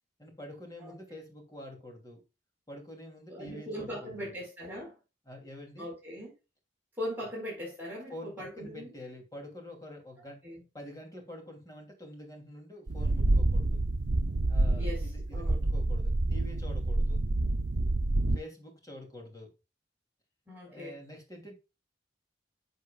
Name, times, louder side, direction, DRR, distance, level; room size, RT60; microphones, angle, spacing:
voice 1, 0.2-2.2 2.7-4.3 5.3-5.9 8.1-10.4 10.7-13.8 14.5-17.2 18.3-19.5 20.6-21.6, left 1 dB, 20° left, 2.9 m, -47 dB
voice 2, 3.3-4.9 5.8-6.3 7.0-8.9 10.2-10.6 14.7-15.6 20.5-21.0, left 1 dB, 10° right, 4.7 m, -40 dB
sound 1, 12.9-18.4, right 2 dB, 80° right, 0.7 m, -28 dB
11.0 x 6.4 x 2.4 m
head